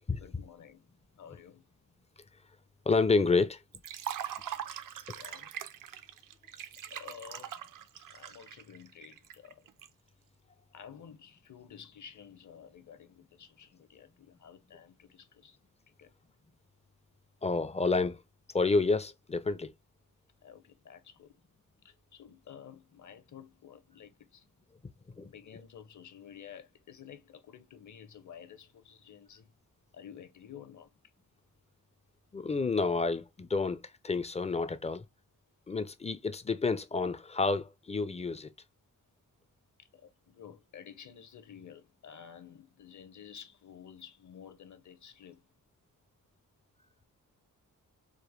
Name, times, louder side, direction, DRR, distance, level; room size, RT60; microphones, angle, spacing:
voice 1, 0.1-0.8 1.2-1.6 5.1-5.5 6.1-6.2 6.9-7.6 8.0-9.6 10.7-15.6 16.0-16.1 20.4-21.4 21.8-24.4 25.2-29.6 29.9-30.9 39.8-45.4, left 8 dB, 55° left, 0.8 m, -52 dB
voice 2, 2.9-3.6 17.4-18.2 18.5-19.7 25.1-25.3 32.3-35.1 35.7-38.5, left 3 dB, 20° left, 0.4 m, -29 dB
Liquid, 3.7-9.9, right 10 dB, 65° right, 0.5 m, -41 dB
5.0 x 2.1 x 3.0 m
cardioid pair, 100°, 35 cm